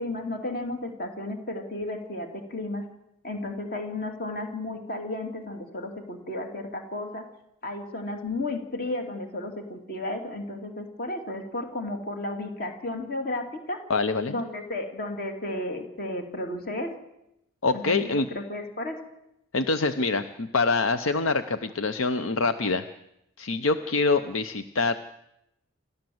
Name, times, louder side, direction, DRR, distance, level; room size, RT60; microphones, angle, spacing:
voice 1, 0.0-2.8 3.2-7.3 7.6-13.8 14.3-16.9 17.7-19.0, left 2 dB, 45° left, 5 dB, 2.7 m, -33 dB
voice 2, 13.9-14.3 17.6-18.3 19.5-22.8 23.4-25.0, left 3 dB, 70° left, 10 dB, 0.8 m, -25 dB
28.0 x 13.0 x 7.8 m, 0.85 s
head